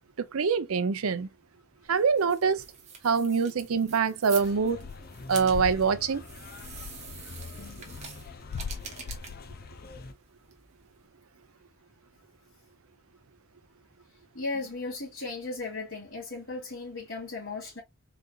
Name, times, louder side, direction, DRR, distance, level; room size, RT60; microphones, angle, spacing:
voice 1, 0.3-1.3 1.9-2.6 3.0-4.9 5.3-6.2, right 5 dB, 90° right, 0.6 m, -25 dB
sound 1, 1.9-11.1, right 6 dB, 35° right, 1.2 m, -46 dB
sound 2, 4.4-10.1, left 3 dB, 45° left, 0.6 m, -45 dB
sound 3, 4.7-5.0 5.3-9.9, left 6 dB, 80° left, 0.4 m, -40 dB
voice 2, 14.3-17.8, left 3 dB, 65° left, 2.6 m, -36 dB
4.1 x 3.8 x 2.3 m
head